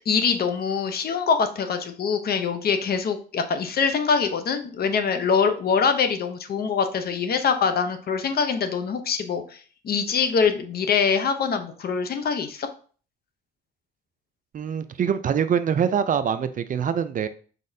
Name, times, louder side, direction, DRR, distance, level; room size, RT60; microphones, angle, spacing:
voice 1, 0.1-12.7, left 6 dB, 50° left, 8 dB, 0.6 m, -24 dB
voice 2, 14.5-17.3, right 8 dB, 45° right, 12 dB, 0.4 m, -24 dB
4.2 x 3.9 x 2.6 m, 0.41 s
cardioid pair, 90°, 20 cm